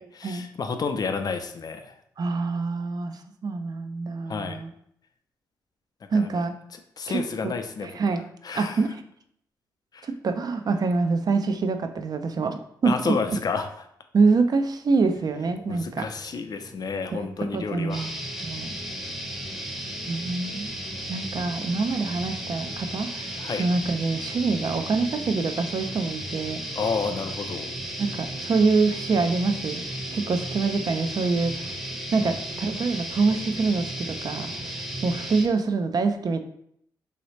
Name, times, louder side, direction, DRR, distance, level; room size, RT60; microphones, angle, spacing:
voice 1, 0.1-1.9 4.3-4.6 6.1-6.3 7.0-7.9 8.4-8.8 9.9-10.1 12.8-13.7 15.7-18.1 23.4-23.7 26.8-27.7 32.2-32.3, left 5 dB, 50° left, 7 dB, 0.5 m, -30 dB
voice 2, 2.2-4.7 6.1-6.6 7.1-7.5 7.8-8.3 8.5-9.0 10.0-13.2 14.1-16.1 17.1-17.3 17.5-18.1 18.4-18.7 20.1-20.7 21.1-23.3 23.6-26.6 28.0-29.8 30.1-31.7 32.1-34.5 35.0-36.4, right 4 dB, 50° right, 8 dB, 0.4 m, -25 dB
sound 1, 14.9-33.2, equal, 75° right, 1.0 m, -53 dB
sound 2, 17.9-35.5, right 1 dB, 5° right, 0.7 m, -34 dB
3.0 x 2.8 x 3.0 m, 0.70 s
supercardioid pair, 50°, 8 cm